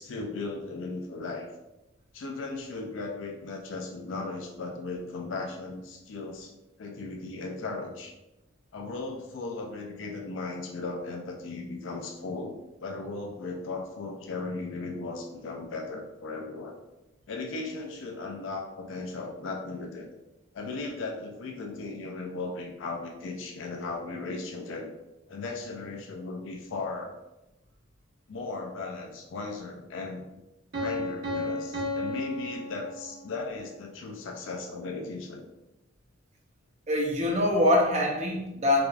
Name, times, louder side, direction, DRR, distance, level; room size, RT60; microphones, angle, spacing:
voice 1, 0.0-1.5 2.1-6.5 6.8-8.1 8.7-12.6 12.8-16.8 17.3-20.1 20.5-24.9 25.3-27.1 28.3-30.3 30.8-35.4, left 3 dB, 65° left, 2 dB, 0.4 m, -37 dB
Piano, 30.7-33.5, left 1 dB, 55° right, 1.0 m, -33 dB
voice 2, 36.9-38.9, left 1 dB, 35° right, 0 dB, 0.5 m, -24 dB
4.7 x 2.4 x 2.3 m, 0.98 s
head